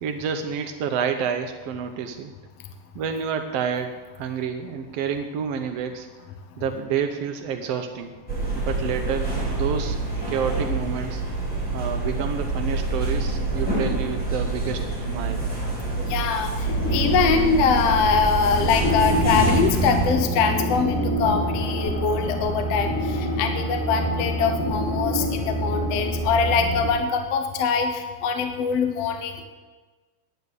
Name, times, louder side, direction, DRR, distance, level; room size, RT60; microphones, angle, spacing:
voice 1, 0.0-2.3 2.9-6.1 6.6-8.1 8.5-10.0 10.3-11.2 11.7-14.8 15.1-15.5, right 7 dB, 85° right, 6 dB, 1.4 m, -29 dB
sound 1, 8.3-20.1, right 2 dB, ahead, 5.1 m, -27 dB
voice 2, 16.1-29.4, left 5 dB, 65° left, 6 dB, 1.8 m, -23 dB
sound 2, 16.7-26.9, equal, 35° left, 3.0 m, -26 dB
11.5 x 9.5 x 8.1 m, 1.3 s
omnidirectional pair, 3.9 m